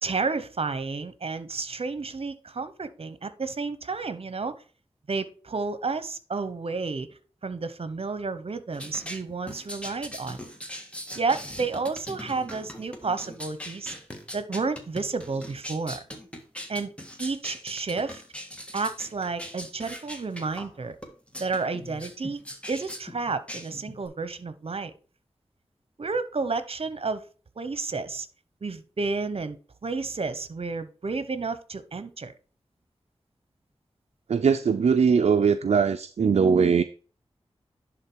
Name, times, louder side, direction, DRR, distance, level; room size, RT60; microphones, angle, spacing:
voice 1, 0.0-4.5 5.1-10.4 11.1-13.9 14.3-16.0 16.7-16.9 17.2-18.2 18.7-21.0 21.4-22.4 22.7-24.9 26.0-27.2 27.6-28.3 28.6-29.6 29.8-32.3, right 4 dB, 60° right, 1.0 m, -31 dB
sound 1, 8.7-24.1, equal, 10° left, 1.8 m, -40 dB
voice 2, 34.3-36.8, right 6 dB, 75° right, 0.4 m, -21 dB
11.0 x 3.8 x 4.5 m
wide cardioid pair, 60°, 11 cm